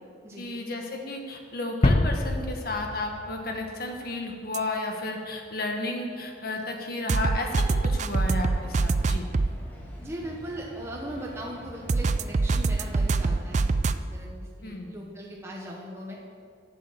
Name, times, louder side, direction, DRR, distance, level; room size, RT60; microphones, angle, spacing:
voice 1, 0.4-9.3 14.6-14.9, left 2 dB, 50° left, 2 dB, 1.5 m, -33 dB
sound 1, 1.8-4.5, left 2 dB, 30° left, 0.5 m, -27 dB
sound 2, 4.5-4.6 7.1-9.5 11.9-14.0, right 3 dB, 35° right, 0.4 m, -24 dB
sound 3, 8.4-13.8, equal, 10° left, 2.0 m, -45 dB
voice 2, 10.0-13.6 14.1-14.3 14.6-16.2, right 1 dB, 15° right, -3 dB, 1.2 m, -38 dB
11.0 x 7.6 x 7.4 m, 2.4 s
head